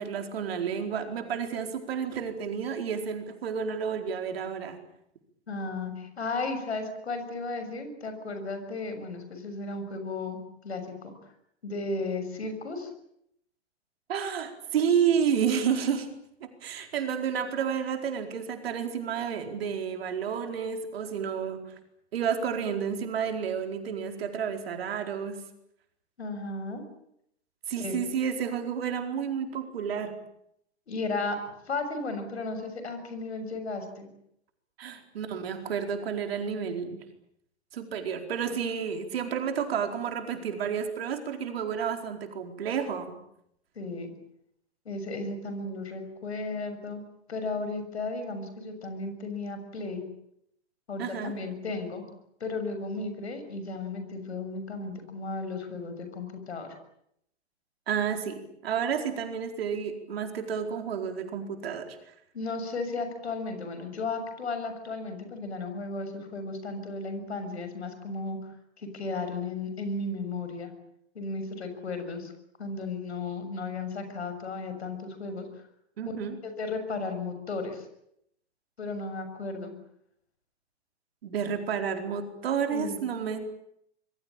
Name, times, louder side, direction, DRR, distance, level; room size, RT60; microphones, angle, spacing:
voice 1, 0.0-4.8 14.1-16.1 16.4-21.6 22.1-25.4 27.7-30.1 34.8-37.0 37.7-43.2 51.0-51.3 57.9-62.0 76.0-76.4 81.2-83.4, right 7 dB, 60° right, 6 dB, 4.6 m, -30 dB
voice 2, 5.5-10.4 10.6-11.1 11.6-12.9 26.2-26.8 27.8-28.0 30.9-31.4 31.7-34.1 43.7-44.1 44.8-47.0 47.3-50.0 50.9-52.0 52.4-56.7 62.3-68.4 68.8-70.7 71.1-72.3 72.6-75.5 76.4-77.8 78.8-79.7 82.7-83.0, left 3 dB, 75° left, 8 dB, 6.8 m, -34 dB
26.0 x 22.5 x 8.9 m, 0.76 s
figure-of-eight pair, 105°, 33 cm